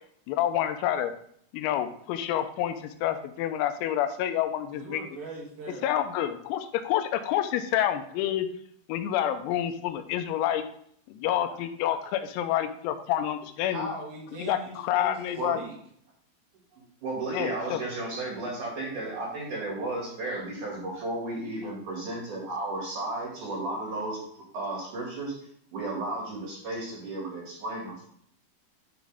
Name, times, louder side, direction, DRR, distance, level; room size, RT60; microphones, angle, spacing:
voice 1, 0.3-1.1 1.5-5.0 5.8-8.5 8.9-10.6 11.1-13.9 14.4-15.6 17.3-17.8, left 11 dB, 90° left, 8 dB, 3.5 m, -28 dB
voice 2, 4.7-5.9 11.9-12.0 13.7-15.2 15.5-15.8, right 1 dB, 65° right, -1 dB, 3.4 m, -39 dB
voice 3, 16.7-24.2 24.5-25.3 25.7-28.1, right 2 dB, 50° right, -3 dB, 3.0 m, -34 dB
11.5 x 4.9 x 3.5 m, 0.65 s
omnidirectional pair, 5.9 m